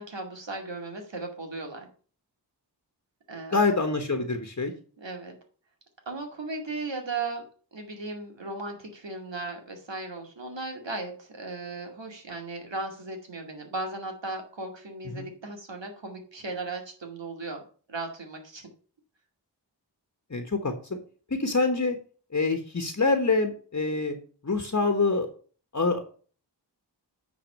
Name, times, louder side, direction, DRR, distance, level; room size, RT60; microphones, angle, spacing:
voice 1, 0.0-1.9 3.3-3.6 5.0-5.3 6.1-7.4 7.7-17.6 17.9-18.7, right 3 dB, 85° right, 3 dB, 2.3 m, -36 dB
voice 2, 3.5-4.7 15.1-15.3 20.3-21.0 21.3-22.0 22.3-24.2 24.4-25.3 25.7-26.0, left 3 dB, 40° left, 6 dB, 1.3 m, -25 dB
9.3 x 4.2 x 6.6 m, 0.41 s
wide cardioid pair, 60°, 43 cm